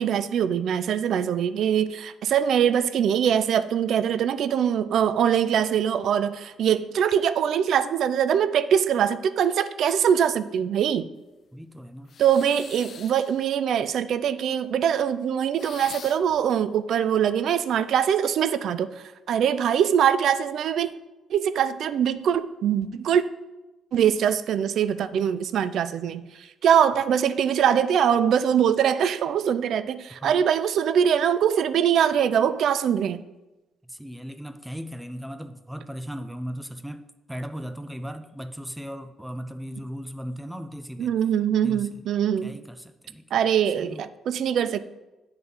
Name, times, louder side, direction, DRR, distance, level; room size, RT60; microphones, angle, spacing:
voice 1, 0.0-11.1 12.2-20.9 21.3-23.2 23.9-33.2 41.0-42.6 43.3-44.8, right 8 dB, 70° right, 0.3 m, -23 dB
voice 2, 11.5-12.1 30.2-30.4 33.9-41.1 41.6-41.9 42.4-43.2 43.8-44.0, equal, 5° right, 0.4 m, -37 dB
sound 1, 12.1-13.5 15.5-16.4, left 7 dB, 55° left, 0.4 m, -43 dB
7.8 x 3.7 x 5.4 m
cardioid pair, 90°, 0 cm